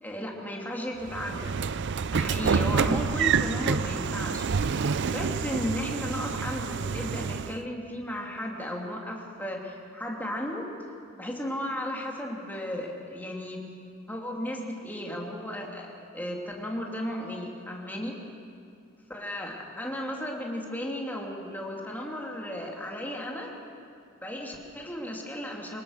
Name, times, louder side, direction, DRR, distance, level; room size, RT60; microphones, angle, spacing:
voice 1, 0.0-1.5 2.1-10.6 11.1-13.7 14.1-18.2 19.1-23.5 24.2-25.8, left 1 dB, 10° left, -1 dB, 2.8 m, -35 dB
Train / Sliding door, 1.1-7.6, right 5 dB, 55° right, 0.5 m, -28 dB
24.0 x 20.0 x 6.5 m, 2.4 s
head